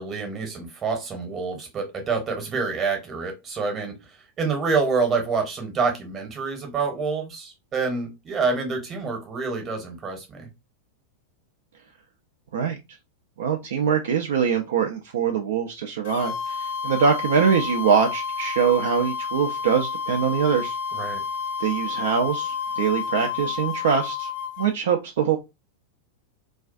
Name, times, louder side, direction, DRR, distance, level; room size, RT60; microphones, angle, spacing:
voice 1, 0.0-4.0 4.4-10.5 20.9-21.2, right 4 dB, 25° right, 0.9 m, -27 dB
voice 2, 13.4-20.8 21.6-24.3 24.6-25.4, right 7 dB, 60° right, 0.4 m, -23 dB
sound 1, 16.0-24.7, left 6 dB, 55° left, 0.4 m, -30 dB
2.4 x 2.3 x 2.4 m
figure-of-eight pair, 90°, 0 cm